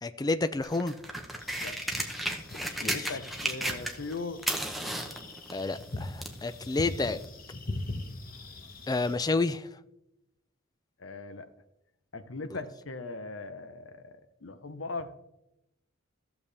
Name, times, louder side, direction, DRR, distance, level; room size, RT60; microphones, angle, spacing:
voice 1, 0.0-1.0 2.8-3.1 5.5-7.2 8.9-9.7, left 3 dB, 20° left, 0.3 m, -29 dB
sound 1, 0.6-4.1 4.4-6.4 7.2-7.3, right 1 dB, ahead, 0.8 m, -34 dB
sound 2, 1.4-9.1, left 2 dB, 45° left, 1.0 m, -42 dB
voice 2, 2.5-4.5 11.0-11.5 12.1-15.1, left 3 dB, 70° left, 0.8 m, -39 dB
14.0 x 7.0 x 3.3 m
head